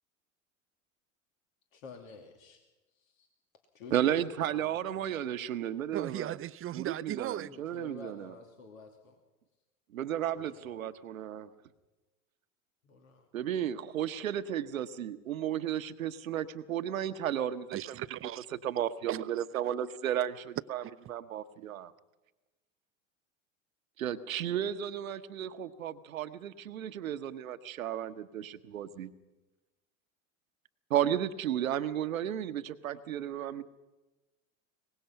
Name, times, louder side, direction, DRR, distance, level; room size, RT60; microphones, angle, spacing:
voice 1, 1.7-2.6 2.9-3.3 3.7-5.4 7.5-9.2 10.3-10.8 12.8-13.3, left 4 dB, 80° left, 2.7 m, -50 dB
voice 2, 3.9-6.4 6.7-8.4 9.9-11.5 13.3-17.8 18.6-20.8 21.1-21.9 24.0-29.1 30.9-33.6, right 10 dB, 85° right, 1.1 m, -33 dB
voice 3, 5.9-7.5 17.7-18.5 19.1-19.7 20.8-20.9, right 13 dB, 35° right, 0.7 m, -38 dB
23.5 x 20.0 x 5.8 m
hypercardioid pair, 80°, 40 cm